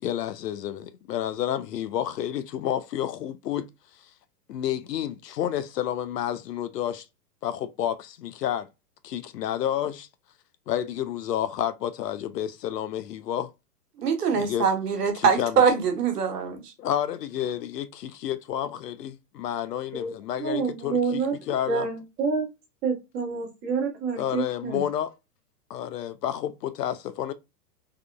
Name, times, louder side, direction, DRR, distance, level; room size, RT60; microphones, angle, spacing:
voice 1, 0.0-3.7 4.5-7.0 7.4-8.7 9.0-10.1 10.7-13.5 14.3-14.7 15.1-15.6 16.8-21.9 24.2-25.1 25.7-27.3, left 10 dB, 90° left, 0.5 m, -30 dB
voice 2, 14.0-16.7, right 6 dB, 80° right, 1.0 m, -23 dB
voice 3, 20.4-21.3 21.7-22.4 22.8-24.8, right 5 dB, 30° right, 1.2 m, -28 dB
3.5 x 2.3 x 2.2 m
hypercardioid pair, 120°, 47 cm